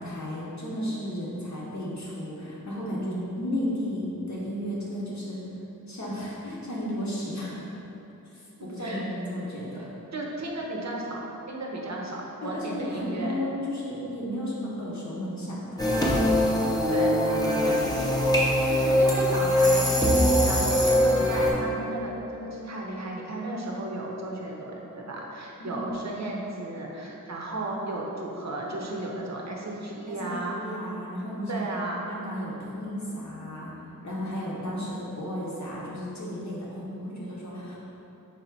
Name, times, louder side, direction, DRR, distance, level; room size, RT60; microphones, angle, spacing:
voice 1, 0.0-5.4 5.9-7.6 8.3-9.9 12.4-15.8 25.6-25.9 30.1-31.7 32.1-33.7 34.0-37.8, equal, 55° left, -6 dB, 0.7 m, -33 dB
voice 2, 8.6-9.1 9.8-13.3 16.9-17.1 17.6-19.8 20.4-30.6 31.5-32.1, right 2 dB, 50° right, -2 dB, 0.7 m, -34 dB
sound 1, 15.8-21.5, equal, 10° left, 0.6 m, -22 dB
3.5 x 2.7 x 4.4 m, 3.0 s
wide cardioid pair, 75°, 34 cm